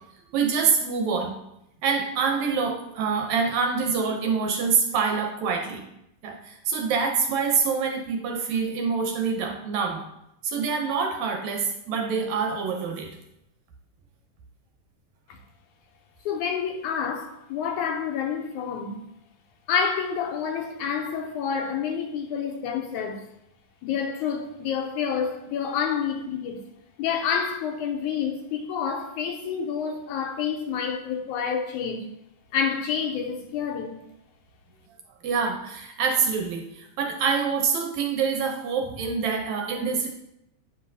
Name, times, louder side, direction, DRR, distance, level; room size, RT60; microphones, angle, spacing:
voice 1, 0.3-1.3 1.8-5.8 6.2-10.0 10.4-13.1 35.2-40.1, right 5 dB, 70° right, 1.9 m, -26 dB
voice 2, 16.3-19.0 19.7-23.3 23.8-26.6 27.0-32.1 32.5-34.0, left 7 dB, 80° left, 2.0 m, -28 dB
9.6 x 5.4 x 2.7 m
omnidirectional pair, 3.6 m